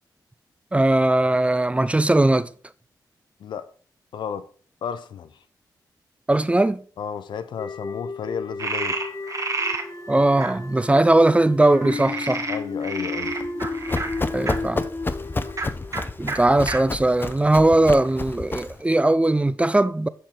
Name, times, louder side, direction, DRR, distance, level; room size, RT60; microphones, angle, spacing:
voice 1, 0.7-2.5 6.3-6.8 10.1-12.5 14.3-14.8 16.2-20.1, right 2 dB, 15° right, 0.4 m, -19 dB
voice 2, 3.4-3.7 4.1-4.5 4.8-5.3 7.0-9.1 12.5-13.4, left 7 dB, 80° left, 0.6 m, -32 dB
sound 1, 7.6-16.8, left 3 dB, 50° left, 1.2 m, -33 dB
Frog, 8.6-9.8 10.4-10.5 11.8-14.6 15.5-15.7 15.9-16.0 16.3-16.4 16.7-16.8 17.4-18.1, right 3 dB, 45° right, 1.7 m, -29 dB
Run, 13.2-18.8, left 3 dB, 25° left, 0.6 m, -30 dB
11.0 x 4.4 x 3.7 m
cardioid pair, 65°, 8 cm